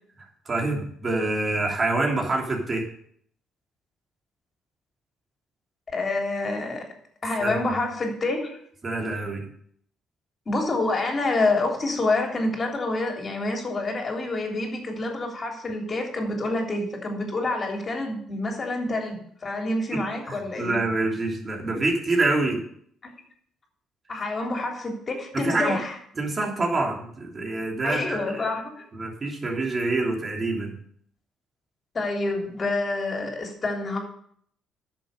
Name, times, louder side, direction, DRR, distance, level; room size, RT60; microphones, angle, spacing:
voice 1, 0.2-2.8 7.4-7.5 8.8-9.5 19.9-20.0 20.3-22.6 25.3-25.8 26.2-28.4 28.9-30.8, right 2 dB, 30° right, -1 dB, 3.2 m, -26 dB
voice 2, 5.9-6.8 7.2-8.6 10.4-20.8 23.0-23.1 24.1-26.0 27.8-28.9 31.9-34.0, left 2 dB, 35° left, 1 dB, 3.4 m, -27 dB
11.0 x 6.9 x 6.8 m, 0.64 s
cardioid pair, 100°, 0 cm